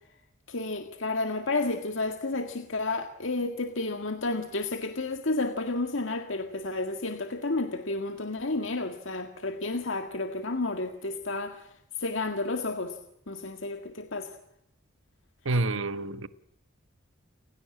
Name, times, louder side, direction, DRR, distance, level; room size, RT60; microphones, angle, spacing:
voice 1, 0.5-11.7 12.0-13.0 13.3-14.3, left 2 dB, 75° left, 1.9 m, -31 dB
voice 2, 15.4-16.3, right 2 dB, 85° right, 1.2 m, -28 dB
29.0 x 16.5 x 8.7 m
head